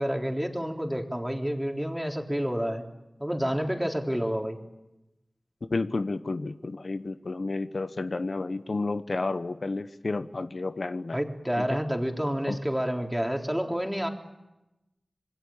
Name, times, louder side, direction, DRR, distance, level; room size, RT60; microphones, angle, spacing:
voice 1, 0.0-2.8 3.2-4.6 11.1-14.1, equal, 5° right, 2 dB, 3.6 m, -29 dB
voice 2, 5.7-11.2 11.6-11.8 12.5-12.6, left 3 dB, 70° left, 10 dB, 0.9 m, -31 dB
27.0 x 21.5 x 8.7 m, 0.96 s
wide cardioid pair, 50°, 0 cm